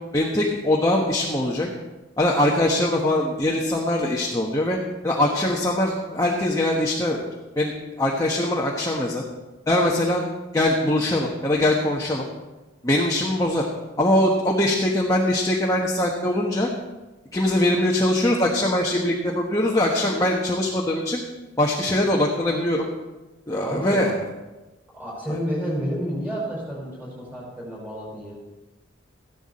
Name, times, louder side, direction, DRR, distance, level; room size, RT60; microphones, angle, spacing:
voice 1, 0.1-1.7 2.2-4.8 5.0-7.2 7.5-7.7 8.0-9.2 9.7-10.2 10.5-12.3 12.8-13.7 14.0-16.7 17.3-21.2 21.6-22.9 23.5-24.1 25.3-25.4, left 1 dB, 15° left, -2 dB, 1.2 m, -22 dB
voice 2, 23.6-24.1 24.9-28.3, equal, 10° right, -5 dB, 5.7 m, -30 dB
15.0 x 11.5 x 4.3 m, 1.1 s
head